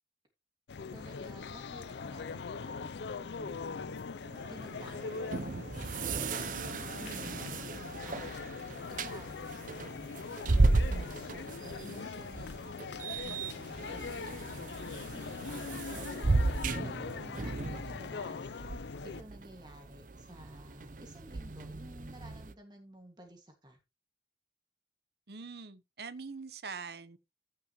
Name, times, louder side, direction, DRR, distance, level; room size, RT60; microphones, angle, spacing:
sound 1, 0.7-19.2, left 5 dB, 80° left, 0.5 m, -42 dB
voice 1, 0.9-4.0 4.5-6.5 7.0-7.7 8.0-8.7 9.0-10.3 10.6-12.7 13.2-14.7 15.5-18.6 19.0-23.8, equal, 25° right, 1.9 m, -52 dB
sound 2, 4.2-22.5, right 3 dB, 45° right, 0.6 m, -35 dB
voice 2, 25.3-27.2, right 5 dB, 65° right, 0.9 m, -43 dB
14.5 x 5.8 x 3.0 m
head